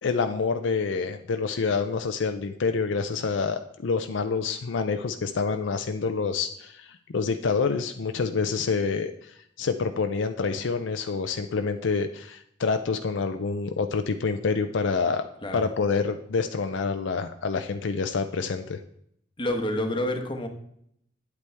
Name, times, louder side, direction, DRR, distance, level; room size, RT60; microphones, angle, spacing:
voice 1, 0.0-9.1 9.6-15.2 15.5-18.8, left 4 dB, 70° left, 7 dB, 0.5 m, -27 dB
voice 2, 19.4-20.5, left 1 dB, 25° left, 4 dB, 1.2 m, -28 dB
9.1 x 8.2 x 3.4 m, 0.70 s
head